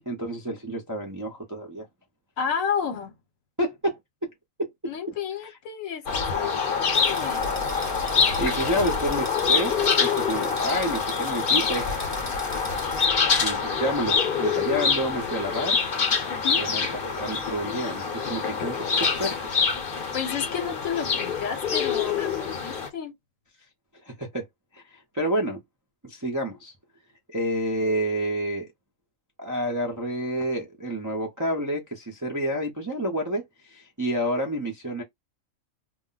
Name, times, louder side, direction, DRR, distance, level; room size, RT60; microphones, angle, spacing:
voice 1, 0.0-1.9 3.6-4.3 4.6-4.7 5.4-5.5 8.4-9.7 10.0-11.9 13.4-15.8 16.6-19.3 24.1-24.5 24.7-25.6 26.0-26.7 27.3-28.7 29.4-35.0, right 1 dB, 25° right, 0.4 m, -29 dB
voice 2, 2.4-3.1 4.8-7.5 16.4-16.6 20.1-23.1, left 7 dB, 70° left, 1.1 m, -31 dB
sound 1, 6.1-22.9, left 5 dB, 50° left, 0.8 m, -25 dB
sound 2, 6.9-13.1, left 1 dB, 15° left, 0.7 m, -40 dB
2.4 x 2.1 x 3.8 m
omnidirectional pair, 1.4 m